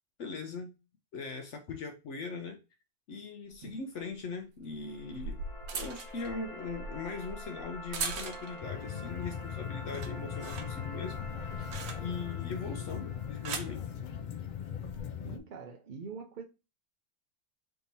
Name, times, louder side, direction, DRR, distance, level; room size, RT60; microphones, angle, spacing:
voice 1, 0.2-0.7 1.1-2.6 3.1-5.4 5.7-14.1, left 4 dB, 65° left, 0.9 m, -40 dB
sound 1, 3.5-3.6 4.8-8.7 9.1-9.5 9.8-12.4 13.1-13.8 14.7-15.0, right 4 dB, 80° right, 1.1 m, -41 dB
sound 2, 4.8-14.9, left 1 dB, 25° left, 0.9 m, -48 dB
sound 3, 8.6-15.4, left 9 dB, 80° left, 0.4 m, -39 dB
voice 2, 15.2-16.4, right 5 dB, 65° right, 0.4 m, -44 dB
3.5 x 2.9 x 4.1 m
omnidirectional pair, 1.4 m